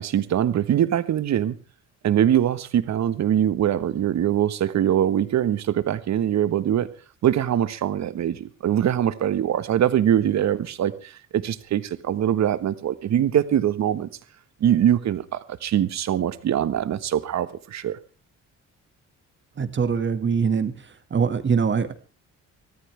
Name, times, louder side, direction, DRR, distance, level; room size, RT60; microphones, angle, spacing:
voice 1, 0.0-1.6 2.0-6.9 7.2-14.1 14.6-18.0, right 10 dB, 65° right, 13 dB, 1.4 m, -23 dB
voice 2, 19.6-20.7 21.1-21.9, right 6 dB, 40° right, 9 dB, 2.0 m, -22 dB
23.0 x 14.5 x 3.4 m, 0.35 s
cardioid pair, 90°, 30 cm